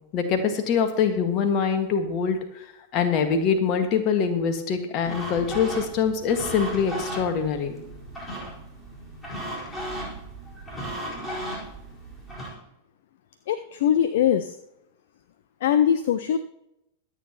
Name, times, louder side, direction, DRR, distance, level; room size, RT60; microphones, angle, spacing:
voice 1, 0.1-2.6 2.9-7.8, left 6 dB, 40° left, 6 dB, 1.7 m, -24 dB
sound 1, 5.0-12.5, right 1 dB, 10° left, 4.4 m, -36 dB
voice 2, 13.5-14.6 15.6-16.4, left 9 dB, 55° left, 12 dB, 0.5 m, -21 dB
23.0 x 8.7 x 3.0 m, 0.86 s
figure-of-eight pair, 90°, 0 cm